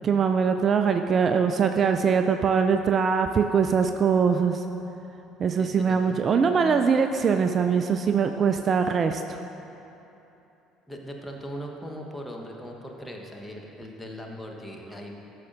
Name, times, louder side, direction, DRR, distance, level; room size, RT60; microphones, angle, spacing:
voice 1, 0.0-4.6 5.4-9.4, right 6 dB, 40° right, 7 dB, 0.3 m, -22 dB
voice 2, 5.6-6.5 10.9-15.1, equal, 10° left, 1 dB, 1.1 m, -39 dB
13.0 x 6.6 x 2.6 m, 3.0 s
figure-of-eight pair, 55°, 0 cm